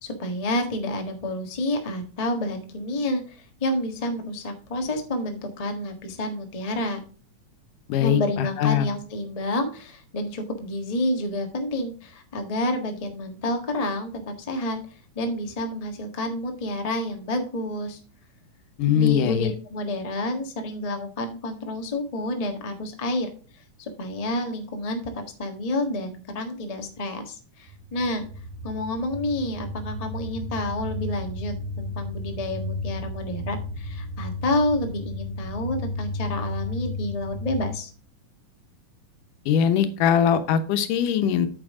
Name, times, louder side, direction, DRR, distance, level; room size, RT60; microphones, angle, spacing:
voice 1, 0.0-7.0 8.0-14.8 15.1-18.0 18.9-23.3 23.8-28.3 28.6-37.9, left 1 dB, 35° left, 4 dB, 0.6 m, -29 dB
voice 2, 7.9-8.9 18.8-19.5 39.5-41.5, left 8 dB, 85° left, 9 dB, 2.6 m, -21 dB
sound 1, 27.7-37.7, left 2 dB, 70° right, 2.7 m, -33 dB
9.0 x 7.4 x 3.6 m, 0.39 s
omnidirectional pair, 3.6 m